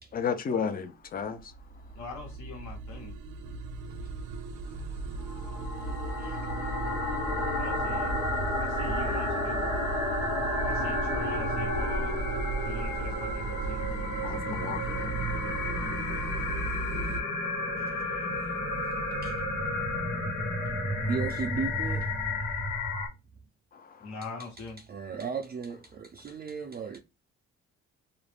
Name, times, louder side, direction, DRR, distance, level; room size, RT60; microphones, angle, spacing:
voice 1, 0.1-1.5 8.2-8.5 14.2-15.1 23.7-24.1, left 6 dB, 30° left, 0.5 m, -34 dB
sound 1, 1.4-17.2, right 4 dB, 85° right, 0.6 m, -36 dB
voice 2, 2.0-3.1 7.5-8.2 8.6-9.8 10.6-12.2 12.6-13.9 24.0-24.8, left 3 dB, 70° left, 1.2 m, -42 dB
sound 2, 5.2-23.1, left 2 dB, 90° left, 1.1 m, -31 dB
voice 3, 5.8-6.4 17.8-18.5 18.8-19.5 21.1-22.6 24.9-27.0, right 5 dB, 30° right, 0.4 m, -37 dB
2.4 x 2.0 x 3.2 m
cardioid pair, 90°, 30 cm